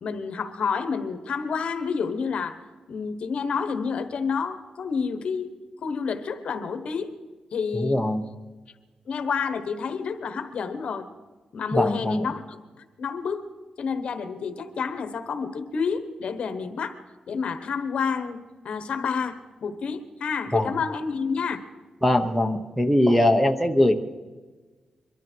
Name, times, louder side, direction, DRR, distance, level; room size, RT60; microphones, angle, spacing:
voice 1, 0.0-2.6 2.9-5.5 5.8-7.2 7.5-8.0 9.1-11.1 11.5-12.4 12.8-13.5 13.8-17.0 17.3-18.4 18.6-21.6, left 5 dB, 60° left, 9 dB, 1.3 m, -29 dB
voice 2, 7.7-8.2 11.7-12.2 20.5-20.7 22.0-23.9, left 1 dB, ahead, 7 dB, 0.9 m, -21 dB
23.0 x 13.0 x 4.6 m, 1.3 s
wide cardioid pair, 150°, 2 cm